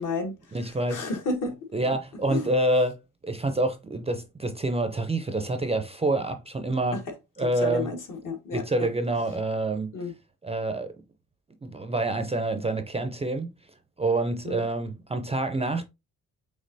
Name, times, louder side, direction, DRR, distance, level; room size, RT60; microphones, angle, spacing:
voice 1, 0.0-0.3 0.7-1.5 2.3-2.5 6.9-7.0 7.6-8.9 9.9-10.1 14.4-14.6, left 3 dB, 65° left, 1.5 m, -31 dB
voice 2, 0.5-1.1 1.7-3.0 3.2-7.0 7.4-7.9 8.5-9.9 10.4-10.9 11.6-13.5 14.0-15.9, right 2 dB, 20° right, 0.4 m, -27 dB
5.2 x 3.5 x 2.6 m
cardioid pair, 130°, 34 cm